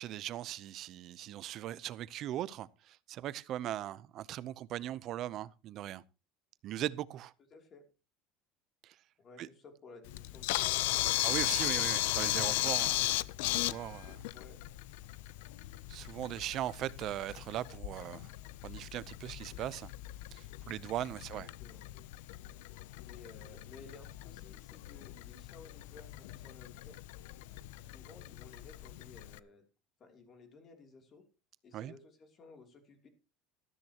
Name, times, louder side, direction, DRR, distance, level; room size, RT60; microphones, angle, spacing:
voice 1, 0.0-6.0 6.6-7.3 8.8-9.0 9.4-9.5 11.2-13.2 13.4-14.2 15.9-18.3 18.6-19.9 20.3-21.5 31.7-31.9, right 13 dB, 40° right, 0.7 m, -39 dB
voice 2, 7.5-7.8 9.2-11.4 14.3-14.6 21.2-21.8 23.0-27.0 27.8-29.6 30.0-31.2 31.6-33.1, left 4 dB, 25° left, 3.0 m, -56 dB
Camera, 10.1-29.4, left 18 dB, 80° left, 0.6 m, -37 dB
14.0 x 13.0 x 3.0 m
cardioid pair, 165°, 0 cm